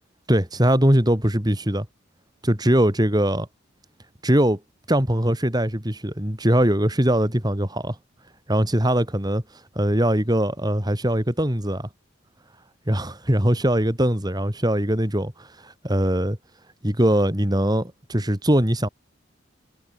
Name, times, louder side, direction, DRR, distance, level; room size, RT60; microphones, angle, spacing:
voice 1, 0.3-1.9 2.4-3.5 4.2-4.6 4.9-8.0 8.5-11.9 12.9-16.4 16.8-18.9, right 1 dB, 20° right, 3.5 m, -21 dB
head